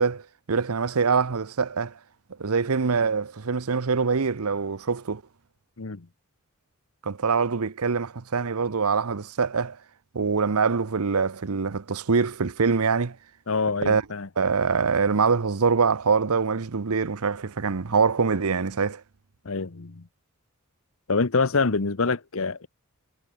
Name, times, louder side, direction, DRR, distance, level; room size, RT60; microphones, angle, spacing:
voice 1, 0.0-1.9 2.4-5.2 7.0-9.8 10.1-13.2 13.8-14.0 14.4-19.0, right 5 dB, 80° right, 0.8 m, -24 dB
voice 2, 13.5-14.3 19.4-20.0 21.1-22.7, left 4 dB, 65° left, 1.0 m, -25 dB
head